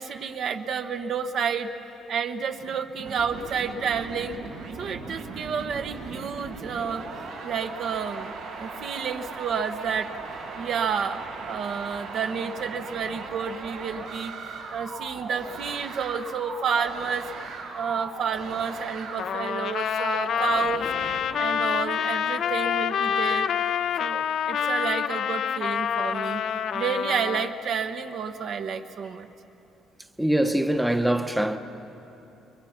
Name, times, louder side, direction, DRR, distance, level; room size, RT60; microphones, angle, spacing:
voice 1, 0.0-1.7 2.1-4.4 4.8-7.0 7.4-10.1 10.6-14.3 14.7-17.3 17.7-20.9 21.4-23.5 24.0-26.4 26.7-29.3, right 6 dB, 55° right, 1.0 m, -30 dB
sound 1, 3.0-19.5 20.0-21.2, right 4 dB, 90° right, 4.4 m, -38 dB
Trumpet, 19.2-27.5, left 8 dB, 60° left, 0.6 m, -27 dB
voice 2, 30.2-31.6, right 1 dB, 5° right, 0.9 m, -23 dB
29.5 x 22.0 x 5.9 m
cardioid pair, 115°, 0 cm